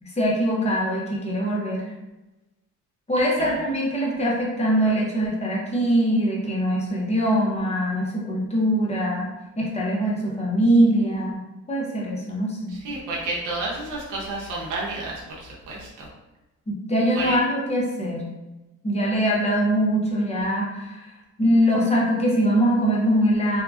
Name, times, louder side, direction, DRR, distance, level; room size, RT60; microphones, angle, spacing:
voice 1, 0.0-1.9 3.1-9.3 9.6-11.4 11.7-12.8 16.7-18.3 18.8-21.1 21.4-23.6, equal, 20° left, -4 dB, 0.8 m, -22 dB
voice 2, 12.8-15.1 15.7-16.1 17.2-17.3, right 2 dB, 80° right, -4 dB, 0.7 m, -30 dB
2.7 x 2.3 x 2.4 m, 1.0 s
cardioid pair, 90°, 30 cm